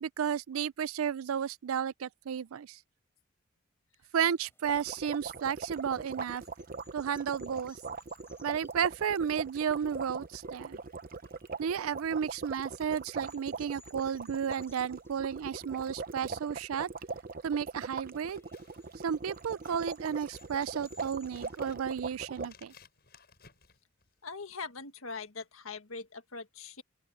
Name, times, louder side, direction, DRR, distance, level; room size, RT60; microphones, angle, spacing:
voice 1, 0.0-2.8 4.1-6.4 6.9-7.8 8.4-10.8 11.6-16.9 17.4-18.4 19.0-22.7, right 7 dB, 90° right, 0.4 m, -33 dB
sound 1, 4.1-21.6, left 3 dB, 10° left, 4.3 m, -64 dB
sound 2, 4.6-22.5, right 4 dB, 45° right, 0.8 m, -41 dB
Scissors, 18.2-24.4, left 5 dB, 50° left, 7.6 m, -61 dB
voice 2, 24.2-26.8, left 4 dB, 85° left, 1.7 m, -42 dB
open air
head